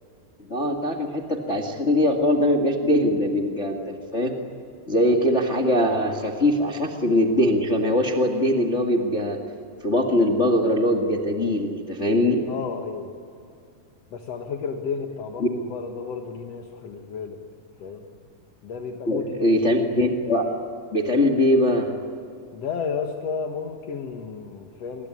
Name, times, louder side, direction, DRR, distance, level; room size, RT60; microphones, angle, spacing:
voice 1, 0.4-4.3 4.9-9.4 9.8-12.4 15.4-15.5 19.1-20.4 20.9-21.9, left 1 dB, 45° left, 1 dB, 0.9 m, -22 dB
voice 2, 12.5-13.1 14.1-17.4 17.8-18.0 18.6-19.6 21.2-21.3 22.5-25.1, left 5 dB, 60° left, 3 dB, 1.7 m, -32 dB
26.5 x 22.0 x 10.0 m, 2.4 s
omnidirectional pair, 4.9 m